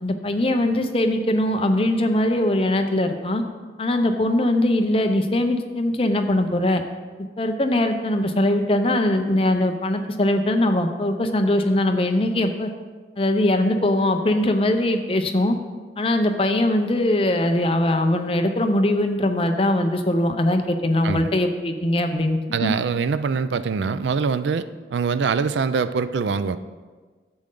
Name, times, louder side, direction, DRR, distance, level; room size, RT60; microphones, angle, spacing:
voice 1, 0.0-3.4 3.8-6.8 7.4-12.7 13.2-15.6 16.0-22.7, left 1 dB, 30° left, 6 dB, 0.6 m, -21 dB
voice 2, 22.5-26.6, right 5 dB, 80° right, 13 dB, 0.4 m, -24 dB
10.5 x 7.6 x 3.8 m, 1.4 s
head